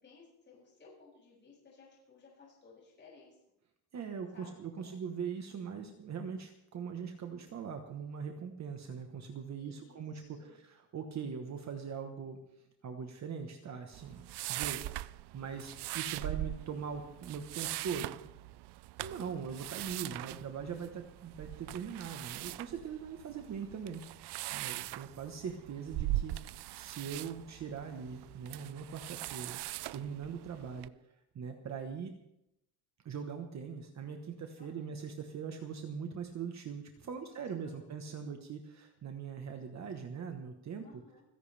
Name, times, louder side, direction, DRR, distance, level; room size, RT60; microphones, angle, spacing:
voice 1, 0.0-3.4 4.3-4.9 9.5-10.6 18.9-19.5 23.3-23.5 23.9-24.0 34.6-34.9 37.0-38.3 40.8-41.2, left 4 dB, 25° left, -5 dB, 7.4 m, -59 dB
voice 2, 3.9-12.4 12.8-18.2 19.0-29.6 29.9-30.9 31.3-32.1 33.0-41.0, right 6 dB, 40° right, 5 dB, 1.3 m, -41 dB
sound 1, 13.9-30.9, right 16 dB, 70° right, 0.5 m, -41 dB
30.0 x 11.0 x 3.4 m, 0.79 s
cardioid pair, 175°, 41 cm